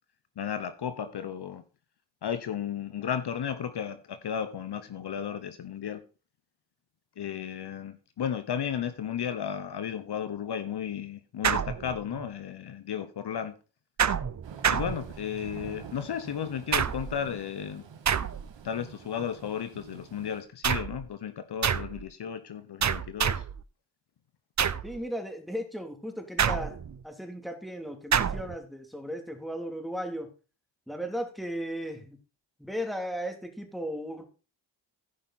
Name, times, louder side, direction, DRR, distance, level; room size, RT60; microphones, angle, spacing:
voice 1, 0.4-1.6 2.2-6.0 7.2-13.5 14.7-17.8 18.6-23.4, left 8 dB, 60° left, 1.1 m, -34 dB
sound 1, 11.4-12.3 14.0-15.5 16.7-17.3 18.1-18.7 20.6-21.1 21.6-22.0 22.8-23.6 24.6-25.0 26.4-27.0 28.1-28.5, right 7 dB, 40° right, 0.8 m, -28 dB
Thunder / Rain, 14.4-20.4, right 6 dB, 75° right, 1.9 m, -47 dB
voice 2, 24.8-26.8 27.0-30.3 30.9-32.2 32.6-34.2, equal, ahead, 2.9 m, -36 dB
15.5 x 5.3 x 4.2 m
cardioid pair, 65°, 45 cm